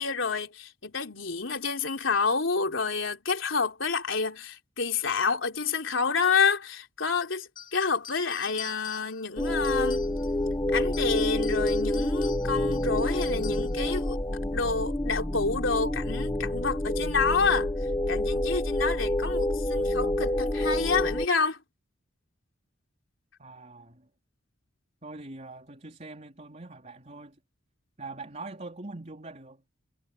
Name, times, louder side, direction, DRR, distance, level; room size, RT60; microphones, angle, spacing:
voice 1, 0.0-10.1 10.7-14.2 14.5-17.7 18.1-21.6, left 5 dB, 75° left, 3.6 m, -28 dB
sound 1, 7.6-10.5 10.8-13.8, left 8 dB, 45° left, 4.2 m, -45 dB
sound 2, 9.4-21.3, left 1 dB, 15° left, 0.8 m, -28 dB
voice 2, 23.4-24.1 25.0-27.4 28.0-29.6, right 3 dB, 35° right, 3.8 m, -43 dB
head